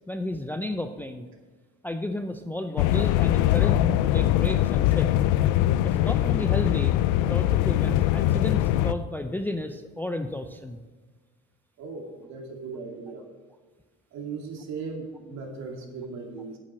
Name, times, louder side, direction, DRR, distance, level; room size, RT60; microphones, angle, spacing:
voice 1, 0.1-1.3 1.8-5.1 5.8-7.0 7.2-10.8, left 1 dB, 5° left, 6 dB, 0.5 m, -32 dB
sound 1, 2.8-8.9, left 13 dB, 75° left, 0.5 m, -22 dB
voice 2, 11.8-13.2 14.1-16.6, right 4 dB, 60° right, 1 dB, 2.6 m, -37 dB
9.0 x 7.3 x 6.1 m, 1.4 s
cardioid pair, 110°, 30 cm